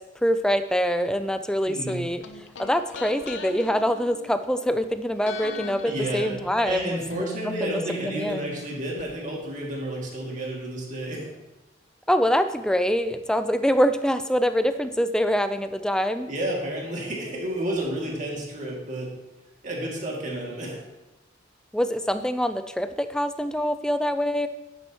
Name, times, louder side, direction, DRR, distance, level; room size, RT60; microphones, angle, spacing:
voice 1, 0.2-2.2 2.6-8.4 12.1-16.3 21.7-24.5, equal, 5° left, 10 dB, 0.4 m, -25 dB
voice 2, 1.7-2.1 5.8-11.3 16.3-19.1 19.6-20.8, right 1 dB, 40° right, -2 dB, 2.2 m, -31 dB
sound 1, 1.9-4.9 5.2-9.1 9.3-9.4, left 3 dB, 85° left, 0.7 m, -40 dB
10.5 x 8.9 x 2.9 m, 1.0 s
head